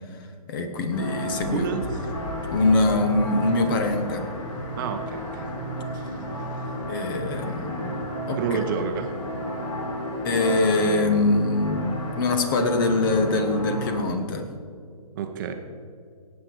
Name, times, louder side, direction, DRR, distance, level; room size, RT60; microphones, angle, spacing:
voice 1, 0.5-1.7 2.5-4.3 6.9-7.9 8.3-8.6 10.2-14.5, left 2 dB, 35° left, 7 dB, 1.3 m, -23 dB
sound 1, 0.9-14.0, equal, 50° left, 3.5 m, -32 dB
voice 2, 1.5-1.8 4.8-5.5 5.9-6.4 8.4-9.1 15.2-15.5, right 6 dB, 30° right, 6 dB, 1.0 m, -29 dB
17.5 x 8.6 x 4.7 m, 2.3 s
hypercardioid pair, 145°, 20 cm